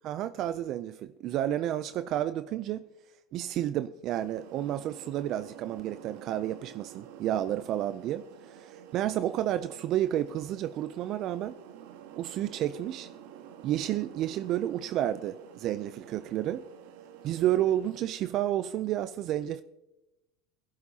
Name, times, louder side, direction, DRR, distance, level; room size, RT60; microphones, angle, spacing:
voice 1, 0.0-2.9 3.3-11.5 12.2-13.1 13.6-16.6 17.2-19.6, right 12 dB, 45° right, 0.4 m, -31 dB
sound 1, 4.1-18.0, right 9 dB, 80° right, 1.5 m, -49 dB
21.5 x 11.0 x 2.8 m
supercardioid pair, 130°, 0 cm